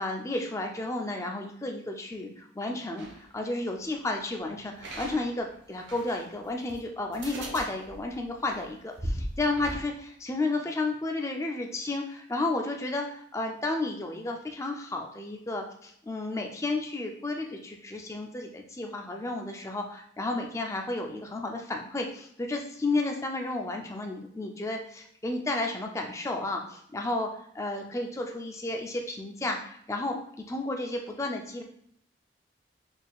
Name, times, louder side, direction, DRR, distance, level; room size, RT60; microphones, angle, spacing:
voice 1, 0.0-27.3 27.5-30.2 30.5-31.6, left 2 dB, 15° left, 2 dB, 0.4 m, -32 dB
sound 1, 3.0-3.2 4.8-6.3 6.7-6.8 7.1-9.8, right 1 dB, 65° right, 0.8 m, -38 dB
4.3 x 3.5 x 2.4 m, 0.68 s
head